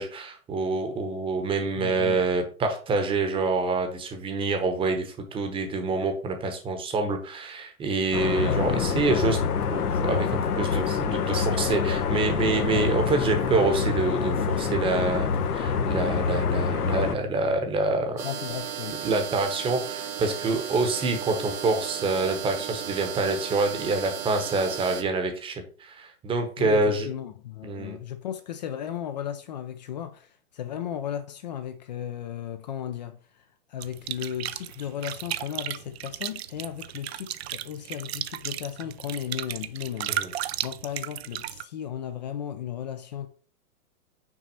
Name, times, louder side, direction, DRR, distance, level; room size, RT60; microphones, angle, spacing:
voice 1, 0.0-9.4 9.7-18.2 19.0-27.1 27.6-28.0 40.1-40.3, right 3 dB, 10° right, 0.9 m, -26 dB
voice 2, 1.7-2.3 8.4-8.9 12.6-12.9 18.2-19.0 26.6-40.2 40.6-43.3, left 10 dB, 30° left, 0.4 m, -35 dB
sound 1, 8.1-17.1, left 6 dB, 85° left, 1.0 m, -26 dB
sound 2, 18.2-25.0, right 8 dB, 75° right, 1.4 m, -35 dB
sound 3, 33.8-41.6, right 12 dB, 45° right, 0.5 m, -35 dB
6.1 x 4.1 x 5.5 m
hypercardioid pair, 140°, 44 cm